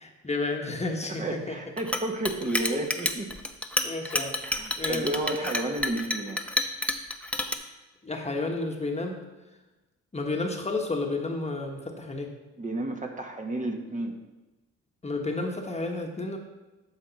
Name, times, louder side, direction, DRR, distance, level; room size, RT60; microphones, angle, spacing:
voice 1, 0.0-1.6 2.6-2.7 3.8-4.3 4.8-5.5 7.6-7.7 8.0-9.2 10.1-12.3 15.0-16.4, left 2 dB, 20° left, 2 dB, 1.2 m, -31 dB
voice 2, 1.0-3.3 4.4-6.4 12.6-14.2, right 1 dB, 25° right, 2 dB, 1.2 m, -32 dB
Chink clink, 1.8-7.6, left 1 dB, 5° left, 0.7 m, -29 dB
12.5 x 5.2 x 4.1 m, 1.1 s
cardioid pair, 90°, 30 cm